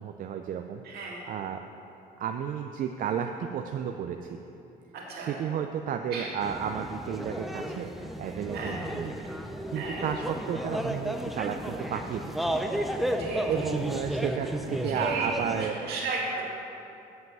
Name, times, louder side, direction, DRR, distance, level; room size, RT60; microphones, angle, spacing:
voice 1, 0.0-1.6 2.2-4.4 5.1-9.2 9.7-12.6 13.0-15.8, right 8 dB, 55° right, 5 dB, 0.5 m, -33 dB
voice 2, 0.8-1.3 4.9-5.3 6.1-6.3 8.5-8.8 9.7-10.1 13.2-13.4 14.9-15.3 15.6-16.4, right 4 dB, 70° right, -4 dB, 2.3 m, -34 dB
sound 1, 6.4-15.7, equal, ahead, 0.5 m, -33 dB
7.8 x 5.7 x 7.3 m, 2.9 s
cardioid pair, 110°, 17 cm